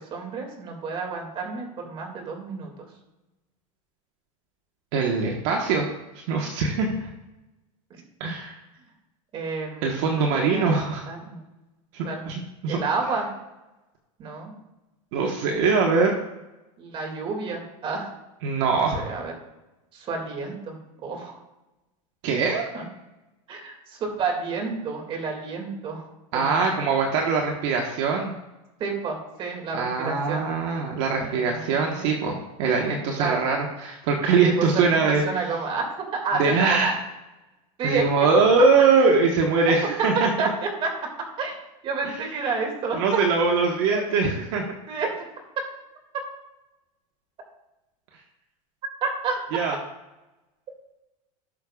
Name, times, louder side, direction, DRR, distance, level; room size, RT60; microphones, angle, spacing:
voice 1, 0.0-2.9 8.2-8.3 9.3-11.4 12.0-12.2 12.7-13.3 14.2-14.5 16.8-18.1 18.9-19.3 19.9-21.4 22.7-22.8 23.5-26.7 28.8-30.4 31.2-32.3 33.2-33.4 34.4-36.9 37.8-38.1 40.1-40.9 41.2-43.0 43.9-44.0 44.9-45.3 49.0-49.4, right 4 dB, 30° right, 2 dB, 2.3 m, -30 dB
voice 2, 4.9-5.9 6.1-7.1 8.2-8.6 9.8-11.1 11.9-12.8 15.1-16.1 18.4-19.0 22.2-22.7 26.3-28.3 29.7-32.3 32.6-35.2 36.4-36.9 37.8-40.3 42.0-42.2 42.9-44.7 49.5-49.7, right 4 dB, 55° right, 0 dB, 1.4 m, -22 dB
17.0 x 6.5 x 2.4 m, 1.0 s
supercardioid pair, 150°, 18 cm